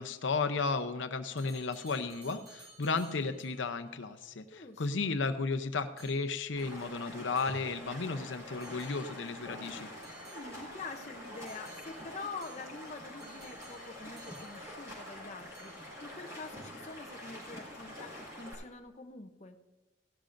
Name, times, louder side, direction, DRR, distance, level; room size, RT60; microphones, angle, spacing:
voice 1, 0.0-9.9, left 4 dB, 80° left, 10 dB, 0.7 m, -34 dB
sound 1, 1.4-3.8 6.0-8.1 8.6-9.4 10.0-10.9 11.5-15.2 15.5-16.1, right 2 dB, 60° right, 3.2 m, -57 dB
voice 2, 4.5-5.1 10.2-18.1 18.4-19.6, left 4 dB, 35° left, 4 dB, 0.7 m, -46 dB
Stream, 6.5-18.5, equal, 15° right, 4.4 m, -46 dB
16.5 x 12.5 x 2.6 m, 1.2 s
head